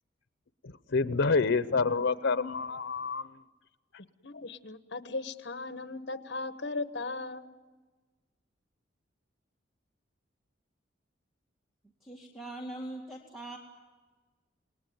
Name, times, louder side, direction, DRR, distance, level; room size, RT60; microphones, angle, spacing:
voice 1, 0.9-3.3, left 4 dB, 80° left, 14 dB, 0.8 m, -27 dB
voice 2, 4.2-7.4, left 3 dB, 60° left, 12 dB, 1.3 m, -37 dB
voice 3, 12.0-13.6, right 1 dB, ahead, 0 dB, 2.2 m, -41 dB
28.5 x 20.0 x 9.4 m, 1.3 s
head